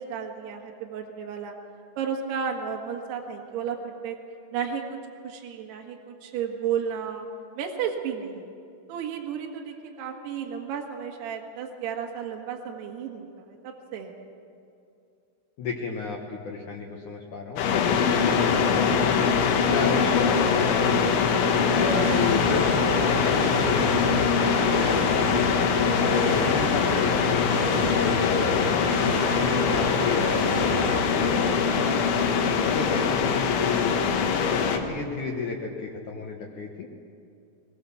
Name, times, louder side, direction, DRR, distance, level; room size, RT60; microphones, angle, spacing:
voice 1, 0.0-1.5 2.0-4.2 4.5-5.0 5.2-7.3 7.6-8.5 8.9-14.1, right 7 dB, 65° right, 1 dB, 3.3 m, -33 dB
voice 2, 15.6-19.1 19.7-21.2 21.6-25.3 25.8-28.7 29.2-32.1 32.6-33.9 34.4-36.9, left 5 dB, 90° left, 0 dB, 1.7 m, -33 dB
sound 1, 17.6-34.8, left 6 dB, 70° left, 3.5 m, -23 dB
sound 2, 21.3-32.1, right 1 dB, 45° right, 8.8 m, -33 dB
21.5 x 21.0 x 7.1 m, 2.5 s
omnidirectional pair, 5.8 m